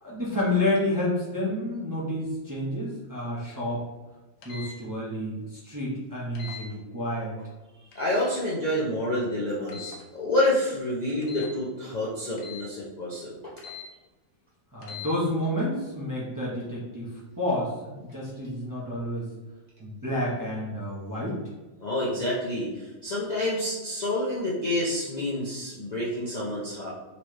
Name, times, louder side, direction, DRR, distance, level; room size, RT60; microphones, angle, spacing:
voice 1, 0.0-3.8 4.4-7.4 14.7-17.1 17.4-19.3 19.8-21.4, left 1 dB, 15° right, -7 dB, 0.8 m, -29 dB
sound 1, 4.4-4.7 6.3-6.6 7.9-8.2 9.7-10.0 11.2-11.5 12.4-12.7 13.6-13.9 14.8-15.1, left 6 dB, 70° left, 1.1 m, -41 dB
voice 2, 7.9-13.3 21.8-26.9, left 1 dB, 40° left, -7 dB, 0.7 m, -28 dB
4.2 x 3.1 x 3.1 m, 1.2 s
omnidirectional pair, 1.5 m